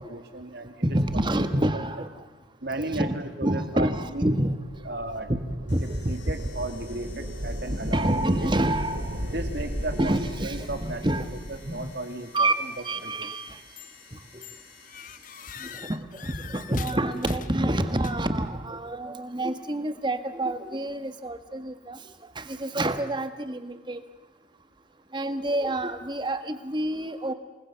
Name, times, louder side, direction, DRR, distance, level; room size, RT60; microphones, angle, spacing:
voice 1, 0.0-0.8 2.6-4.3 4.8-5.3 6.1-8.5 9.3-10.2 10.4-11.0 11.5-12.7 13.0-13.3, right 2 dB, 55° right, 7 dB, 2.3 m, -35 dB
voice 2, 0.8-2.2 2.9-4.6 5.3-6.1 7.7-9.2 10.0-11.3 11.7-11.9 12.3-12.5 12.8-13.6 15.6-22.0 22.3-24.0 25.1-27.3, right 1 dB, 25° right, 9 dB, 1.5 m, -28 dB
sound 1, 3.9-11.9, equal, 75° right, 3.0 m, -36 dB
sound 2, 5.7-15.7, left 5 dB, 60° left, 6.0 m, -52 dB
sound 3, 13.8-14.1 14.4-18.5, left 8 dB, 40° left, 0.8 m, -44 dB
28.0 x 20.5 x 7.0 m, 1.2 s
head